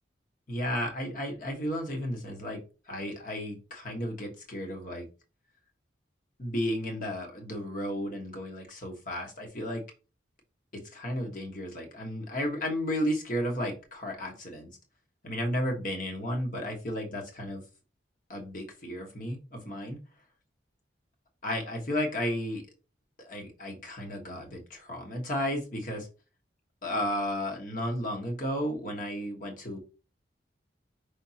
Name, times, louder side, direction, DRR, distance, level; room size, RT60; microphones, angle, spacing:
voice 1, 0.5-5.1 6.4-9.8 10.7-14.7 15.2-17.6 18.3-20.0 21.4-22.6 23.2-26.1 26.8-29.8, equal, 45° left, 2 dB, 1.3 m, -33 dB
5.3 x 3.5 x 2.8 m, 0.32 s
head